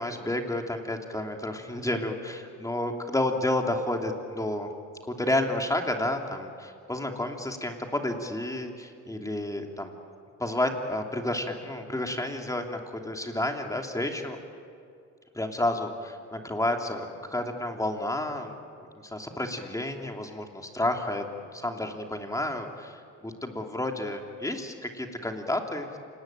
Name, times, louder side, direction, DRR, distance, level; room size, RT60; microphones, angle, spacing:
voice 1, 0.0-4.7 5.1-9.9 10.4-14.4 15.3-18.5 18.9-26.0, left 1 dB, 10° left, 3 dB, 3.1 m, -31 dB
28.0 x 19.5 x 9.1 m, 2.4 s
cardioid pair, 90°, 30 cm